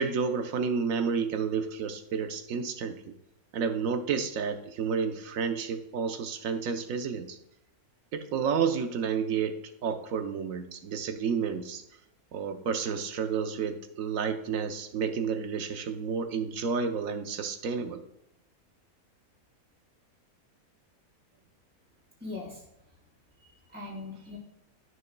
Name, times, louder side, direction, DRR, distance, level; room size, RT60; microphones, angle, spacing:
voice 1, 0.0-3.1 3.5-7.4 8.1-11.8 12.3-18.0, right 6 dB, 70° right, 7 dB, 1.1 m, -30 dB
voice 2, 22.2-22.7 23.3-24.4, left 3 dB, 5° right, -7 dB, 3.0 m, -41 dB
13.0 x 6.4 x 2.2 m, 0.86 s
omnidirectional pair, 1.6 m